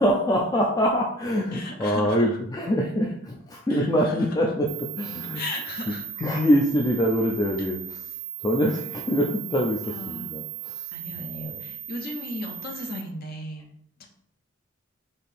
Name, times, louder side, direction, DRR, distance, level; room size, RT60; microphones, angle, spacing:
voice 1, 0.0-4.7 5.0-5.4 6.2-8.0 8.4-10.9 11.2-11.6, equal, 20° left, -1 dB, 0.3 m, -24 dB
voice 2, 1.5-2.3 3.7-3.9 4.2-4.3 5.3-6.0 9.9-10.3 10.9-13.7 14.0-14.1, left 1 dB, 45° left, 3 dB, 0.7 m, -36 dB
sound 1, 4.7-13.0, right 12 dB, 60° right, 0.4 m, -37 dB
4.1 x 2.7 x 3.4 m, 0.68 s
head